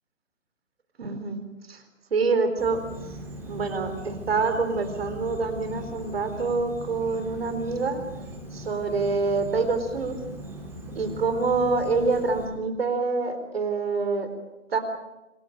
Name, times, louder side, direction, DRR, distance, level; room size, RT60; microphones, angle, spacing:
voice 1, 1.0-1.4 1.7-1.8 2.1-2.8 3.4-8.0 8.5-10.2 11.0-14.3 14.7-14.8, right 4 dB, 50° right, 8 dB, 4.1 m, -26 dB
Insect, 2.6-12.5, right 1 dB, 5° right, 4.1 m, -39 dB
26.5 x 15.0 x 9.2 m, 1.0 s
figure-of-eight pair, 145°, 37 cm